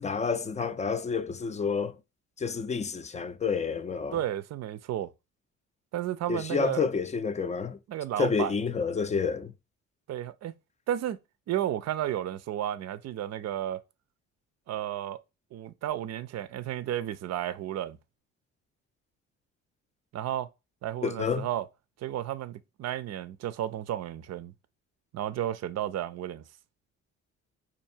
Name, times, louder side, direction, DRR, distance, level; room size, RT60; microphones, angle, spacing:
voice 1, 0.0-1.9 2.4-4.2 6.3-7.8 8.2-9.5 21.0-21.5, left 5 dB, 25° left, 0.4 m, -29 dB
voice 2, 4.1-5.1 5.9-6.8 7.9-8.5 10.1-10.5 10.9-11.2 11.5-13.8 14.7-15.2 15.5-18.0 20.1-20.5 20.8-21.7 22.0-24.5 25.1-26.4, right 12 dB, 60° right, 0.5 m, -32 dB
4.5 x 2.6 x 2.6 m
cardioid pair, 90°, 30 cm